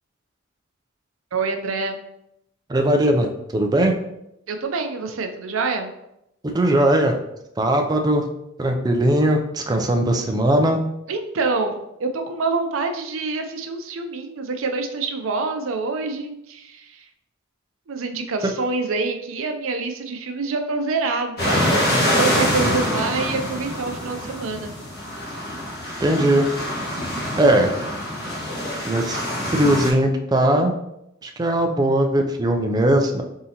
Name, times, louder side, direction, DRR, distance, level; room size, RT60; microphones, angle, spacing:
voice 1, 1.3-2.0 4.5-5.9 11.1-16.9 17.9-24.7, right 3 dB, 80° right, 6 dB, 0.5 m, -26 dB
voice 2, 2.7-3.3 3.5-3.9 6.5-7.2 7.6-8.2 8.6-10.8 26.0-26.5 27.4-27.7 28.8-29.2 29.5-30.7 31.2-33.2, right 1 dB, 20° right, 3 dB, 0.4 m, -19 dB
sound 1, 21.4-29.9, left 1 dB, 50° left, 1.3 m, -25 dB
4.0 x 3.7 x 2.8 m, 0.83 s
head